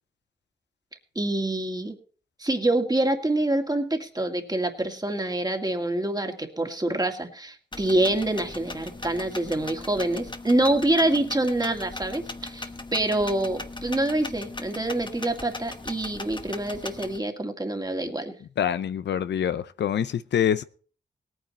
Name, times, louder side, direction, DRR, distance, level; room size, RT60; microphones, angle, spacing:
voice 1, 1.2-2.0 2.4-18.3, right 1 dB, 20° right, 2.3 m, -26 dB
sound 1, 7.7-17.2, left 2 dB, 25° left, 1.1 m, -39 dB
voice 2, 18.6-20.6, left 9 dB, 90° left, 0.6 m, -25 dB
18.0 x 9.1 x 4.3 m
cardioid pair, 50°, 18 cm